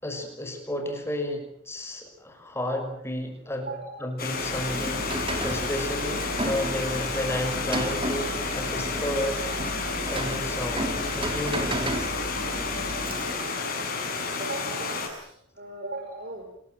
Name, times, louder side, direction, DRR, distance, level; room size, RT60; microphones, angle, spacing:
voice 1, 0.0-3.7 4.0-9.4 10.1-12.1, left 1 dB, 10° left, 4 dB, 6.1 m, -32 dB
voice 2, 3.6-3.9 14.4-15.3 15.6-16.5, right 2 dB, 45° right, 2 dB, 5.9 m, -37 dB
Stream, 4.2-15.1, left 4 dB, 45° left, 7.0 m, -31 dB
Rain, 4.3-13.6, right 1 dB, 25° right, 3.7 m, -33 dB
29.0 x 21.5 x 7.9 m, 0.71 s
head